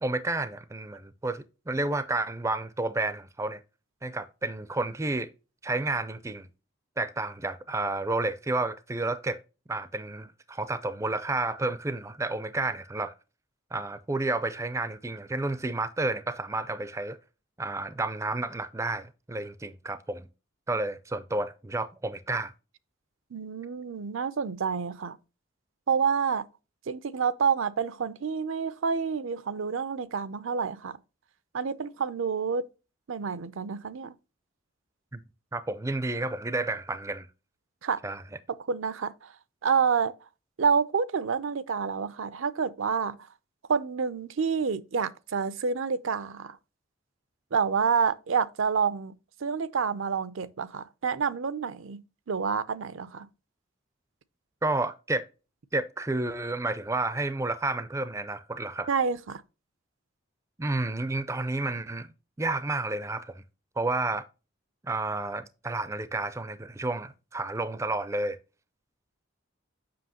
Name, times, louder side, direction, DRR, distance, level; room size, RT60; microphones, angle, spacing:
voice 1, 0.0-3.6 4.0-5.3 5.6-6.5 7.0-9.4 9.7-13.1 13.7-17.2 17.6-20.3 20.7-22.5 35.1-35.2 35.5-37.3 38.0-38.2 54.6-55.2 55.7-58.9 60.6-62.1 62.4-63.4 63.8-64.2 64.8-68.4, right 2 dB, 15° right, 0.4 m, -31 dB
voice 2, 23.3-25.2 25.9-26.5 26.9-31.0 31.5-32.7 33.1-34.1 37.8-38.0 38.5-39.3 39.6-40.1 40.6-43.2 43.7-46.6 47.5-49.2 49.4-53.3 58.9-59.4, right 6 dB, 70° right, 0.5 m, -28 dB
7.7 x 5.7 x 2.8 m
head